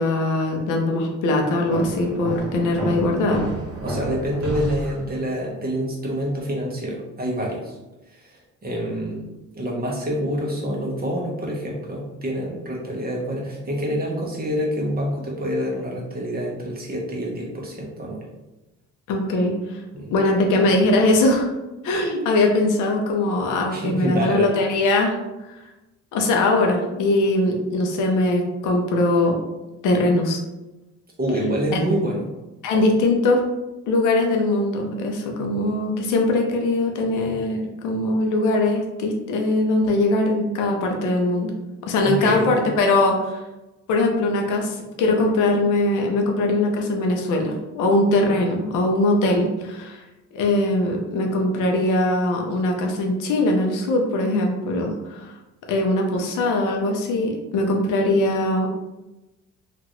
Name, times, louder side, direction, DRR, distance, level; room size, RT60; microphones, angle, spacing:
voice 1, 0.0-3.4 19.1-19.8 20.1-21.5 21.8-25.2 25.5-25.6 26.1-29.4 29.8-30.4 31.7-31.8 32.6-33.4 33.9-41.5 41.8-43.4 43.9-50.0 50.3-55.3 55.7-58.7, left 2 dB, 90° left, 2 dB, 0.7 m, -21 dB
sound 1, 1.7-5.4, right 1 dB, 50° right, 1.1 m, -30 dB
voice 2, 3.8-7.8 8.1-9.2 9.5-18.2 19.9-20.1 23.7-24.5 31.2-32.2 42.0-42.5, equal, 30° right, -2 dB, 1.0 m, -26 dB
3.0 x 2.5 x 3.0 m, 1.0 s
cardioid pair, 90°, 30 cm